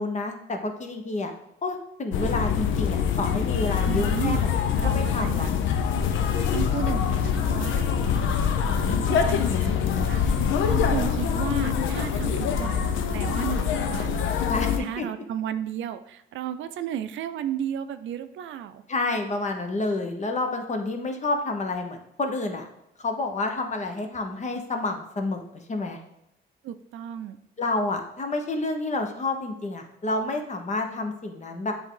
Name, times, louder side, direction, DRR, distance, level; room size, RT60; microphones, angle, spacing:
voice 1, 0.0-1.3 1.6-4.5 4.8-5.5 14.5-15.1 18.9-22.7 23.0-26.0 27.6-31.7, left 2 dB, 35° left, 5 dB, 1.0 m, -29 dB
sound 1, 2.1-14.8, left 7 dB, 80° left, 0.6 m, -24 dB
voice 2, 3.9-4.4 4.8-5.5 6.5-18.8 26.6-27.4, right 10 dB, 75° right, 11 dB, 0.5 m, -34 dB
7.9 x 3.5 x 3.8 m, 0.84 s
cardioid pair, 90°, 20 cm